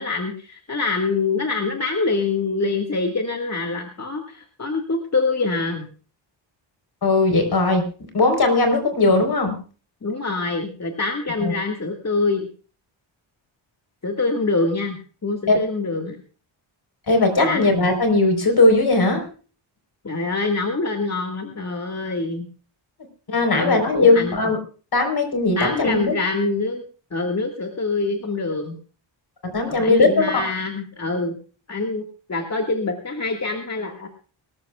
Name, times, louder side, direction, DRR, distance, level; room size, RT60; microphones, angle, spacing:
voice 1, 0.0-5.9 10.0-12.5 14.0-15.0 15.2-16.2 17.4-17.6 20.0-22.5 23.5-24.3 25.6-26.8 27.1-28.8 29.7-31.3 31.7-34.1, left 3 dB, 35° left, 2 dB, 1.9 m, -25 dB
voice 2, 7.0-7.8 8.1-9.6 11.4-11.5 15.5-15.6 17.1-19.2 23.3-24.6 24.9-26.1 29.4-30.3, left 2 dB, 50° left, 6 dB, 4.2 m, -18 dB
24.0 x 14.0 x 2.4 m, 0.38 s
cardioid pair, 95°, 48 cm